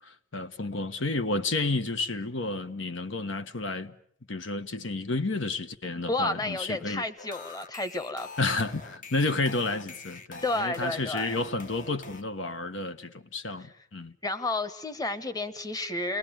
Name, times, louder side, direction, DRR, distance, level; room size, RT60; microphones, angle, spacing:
voice 1, 0.0-3.9 4.3-7.0 8.4-14.1, left 2 dB, 75° left, 1.2 m, -31 dB
voice 2, 6.1-8.3 10.4-11.4 13.6-13.7 14.2-16.2, left 2 dB, 20° left, 1.3 m, -31 dB
sound 1, 7.2-12.2, left 3 dB, 40° left, 1.1 m, -45 dB
29.0 x 20.5 x 9.0 m
head